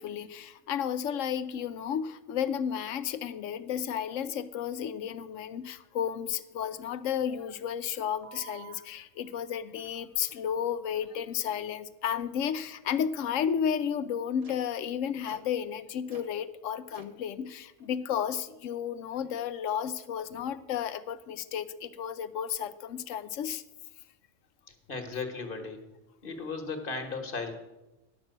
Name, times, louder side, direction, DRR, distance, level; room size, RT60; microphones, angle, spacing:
voice 1, 0.0-23.6, left 8 dB, 75° left, 12 dB, 1.0 m, -33 dB
sound 1, 8.2-8.7 9.8-9.9 10.3-10.4 10.9-11.1 11.4-11.5 12.1-12.3 12.6-12.7 13.3-13.4 13.8-13.9 14.4-14.6 15.3-15.5 16.1-16.3 16.9-17.1 17.8-17.9, right 6 dB, 30° right, 0.9 m, -50 dB
voice 2, 24.7-25.8 26.2-27.5, left 4 dB, 45° left, 5 dB, 1.5 m, -36 dB
11.5 x 5.9 x 7.7 m, 1.0 s
omnidirectional pair, 1.3 m